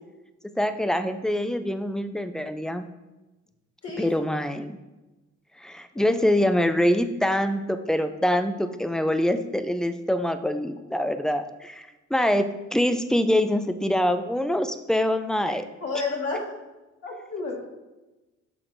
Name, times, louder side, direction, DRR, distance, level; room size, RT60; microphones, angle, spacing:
voice 1, 0.6-2.8 4.0-4.8 5.6-12.5 12.7-15.6, left 1 dB, ahead, 9 dB, 0.4 m, -24 dB
voice 2, 15.8-16.5 17.0-17.7, left 3 dB, 55° left, -3 dB, 1.7 m, -31 dB
7.7 x 5.8 x 2.6 m, 1.1 s
cardioid pair, 90°, 30 cm